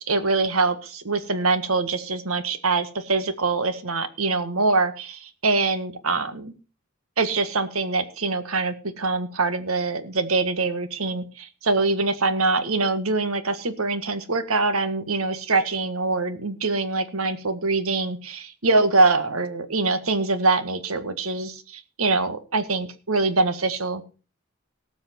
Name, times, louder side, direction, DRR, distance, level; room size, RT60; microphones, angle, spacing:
voice 1, 0.0-6.5 7.2-24.0, right 3 dB, 85° right, 11 dB, 1.7 m, -24 dB
18.5 x 7.2 x 4.4 m, 0.35 s
head